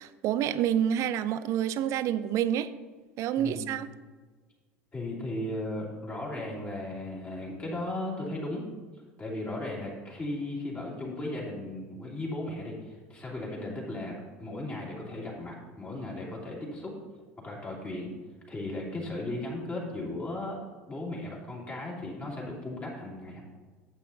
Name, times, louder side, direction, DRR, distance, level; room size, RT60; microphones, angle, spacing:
voice 1, 0.0-2.7 3.2-3.9, right 10 dB, 45° right, 14 dB, 0.5 m, -28 dB
voice 2, 4.9-8.6 9.2-14.1 14.4-16.9 17.4-18.1 18.5-20.6 20.9-23.4, left 1 dB, 20° left, -4 dB, 2.8 m, -36 dB
10.5 x 8.2 x 2.7 m, 1.4 s
figure-of-eight pair, 70°, 7 cm